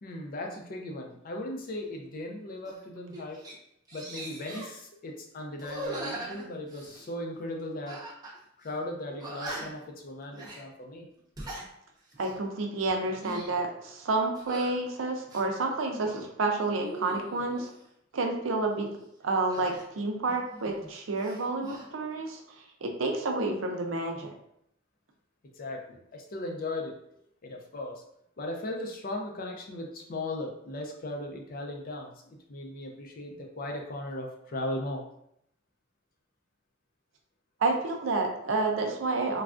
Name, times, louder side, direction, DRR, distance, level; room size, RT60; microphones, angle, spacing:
voice 1, 0.0-3.4 3.9-8.0 8.6-11.1 25.4-26.9 27.4-28.0 28.4-35.0, left 1 dB, 45° left, 1 dB, 0.5 m, -37 dB
sound 1, 2.6-2.8 3.1-3.5 3.9-4.8 5.6-7.1 7.9-8.4 8.6-8.7 9.2-9.9 10.3-10.6 11.2-11.7 12.1-12.4 13.0-13.6 14.3-14.8 15.3-16.2 16.7-17.7 19.5-20.9 21.2-21.9, right 1 dB, 20° right, 0.6 m, -41 dB
voice 2, 12.2-17.7 18.1-18.9 19.2-22.4 22.8-24.3 37.6-39.4, right 3 dB, 85° right, 3 dB, 0.5 m, -29 dB
3.3 x 2.3 x 2.4 m, 0.74 s
head